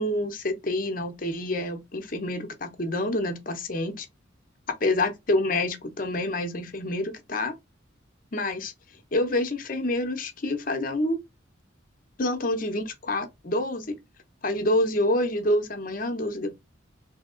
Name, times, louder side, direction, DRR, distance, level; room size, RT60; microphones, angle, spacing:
voice 1, 0.0-4.1 4.8-7.5 8.3-8.7 9.1-11.2 12.2-13.9 14.4-16.5, left 1 dB, 45° left, 0.8 m, -27 dB
3.5 x 2.8 x 3.7 m
head